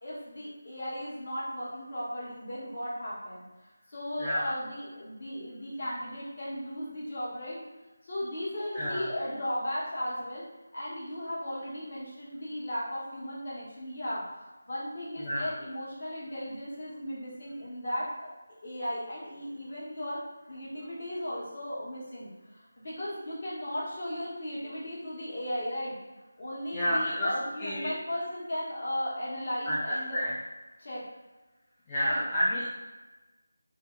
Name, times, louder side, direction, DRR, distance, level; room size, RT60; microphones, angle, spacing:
voice 1, 0.0-3.4 3.9-7.6 8.0-10.4 10.7-18.3 18.6-20.2 20.5-26.0 26.4-30.3 30.8-31.1 32.0-32.2, equal, 50° left, -7 dB, 1.3 m, -36 dB
voice 2, 4.2-4.5 8.7-9.1 15.2-15.5 26.7-27.3 27.6-27.9 29.7-29.8 30.1-30.3 31.9-32.7, equal, 20° left, -9 dB, 0.4 m, -29 dB
2.7 x 2.2 x 3.6 m, 1.2 s
figure-of-eight pair, 170°, 0 cm